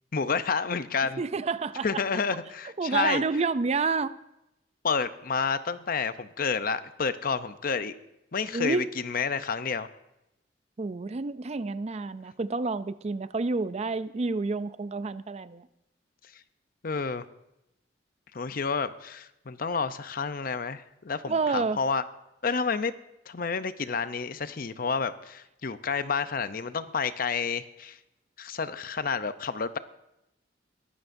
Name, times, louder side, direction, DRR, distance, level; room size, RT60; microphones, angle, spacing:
voice 1, 0.1-1.2 1.8-3.2 4.8-7.9 8.3-9.9 16.8-17.2 18.3-22.0 22.4-22.9 23.3-28.0 28.4-29.8, left 5 dB, 50° left, 12 dB, 0.7 m, -30 dB
voice 2, 1.2-2.0 2.8-4.1 8.5-8.9 10.8-15.7 21.3-21.8, right 4 dB, 35° right, 14 dB, 0.4 m, -29 dB
22.0 x 12.5 x 2.7 m, 0.86 s
head